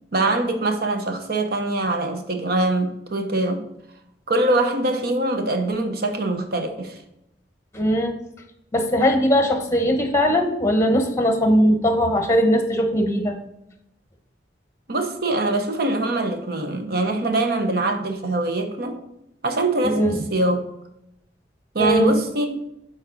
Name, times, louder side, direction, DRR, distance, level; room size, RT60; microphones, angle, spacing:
voice 1, 0.1-3.6 4.3-7.0 14.9-19.0 19.4-20.6 21.7-22.6, right 2 dB, 60° right, 0.9 m, -23 dB
voice 2, 7.7-8.1 8.7-13.4 19.9-20.2 21.8-22.2, equal, 15° left, 1.0 m, -19 dB
7.2 x 4.4 x 3.9 m
head